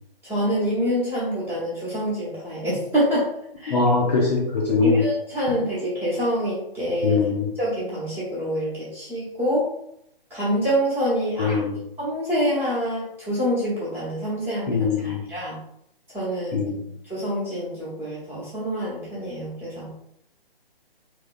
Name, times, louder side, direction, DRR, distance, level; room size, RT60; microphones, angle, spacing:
voice 1, 0.2-3.3 3.6-3.8 4.8-7.2 7.6-9.7 10.3-11.6 12.0-15.6 16.1-16.6 17.0-19.9, equal, 5° right, -9 dB, 1.1 m, -26 dB
voice 2, 3.7-5.1 5.5-5.6 7.0-7.5 11.4-11.8 14.7-15.2 16.5-16.9, left 4 dB, 40° left, -2 dB, 0.6 m, -22 dB
3.4 x 2.9 x 2.5 m, 0.76 s
figure-of-eight pair, 145°, 30 cm